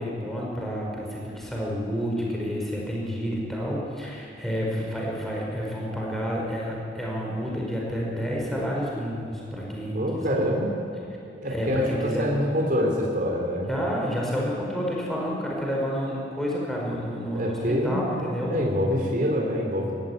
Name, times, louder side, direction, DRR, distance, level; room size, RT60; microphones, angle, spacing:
voice 1, 0.0-10.3 11.4-12.3 13.7-18.6, equal, ahead, -3 dB, 5.1 m, -29 dB
voice 2, 9.9-10.8 11.4-13.7 17.3-18.1 18.5-20.0, equal, 45° right, -1 dB, 3.6 m, -25 dB
22.0 x 16.0 x 9.4 m, 2.6 s
head